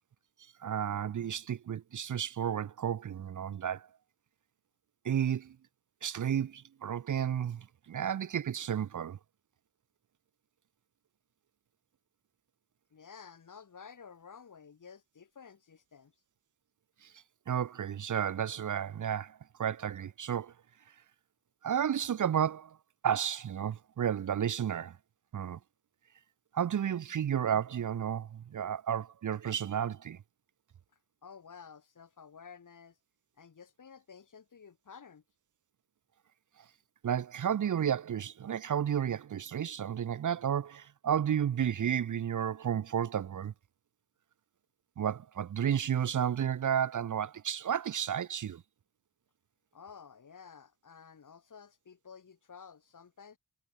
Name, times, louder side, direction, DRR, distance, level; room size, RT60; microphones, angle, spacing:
voice 1, 0.6-3.9 5.0-5.6 6.0-9.2 17.0-17.1 17.5-20.5 21.6-22.8 23.0-25.0 25.3-25.6 26.5-30.2 37.0-43.5 45.0-48.6, right 9 dB, 55° right, 0.8 m, -32 dB
voice 2, 12.9-16.1 31.2-33.0 33.4-35.2 49.7-53.4, left 6 dB, 55° left, 6.8 m, -52 dB
wide cardioid pair, 110°, 36 cm